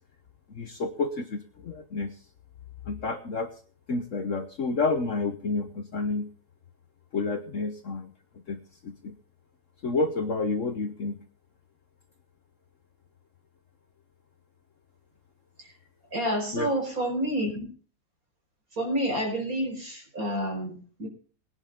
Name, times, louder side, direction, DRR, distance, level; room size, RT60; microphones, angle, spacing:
voice 1, 0.5-2.2 2.8-3.5 3.9-6.3 7.1-8.1 8.5-9.2 9.8-11.2 16.5-16.7, left 3 dB, 50° left, 8 dB, 1.2 m, -30 dB
voice 2, 16.1-17.7 18.8-21.1, equal, 50° right, 2 dB, 5.4 m, -29 dB
19.0 x 10.5 x 3.6 m, 0.42 s
omnidirectional pair, 1.9 m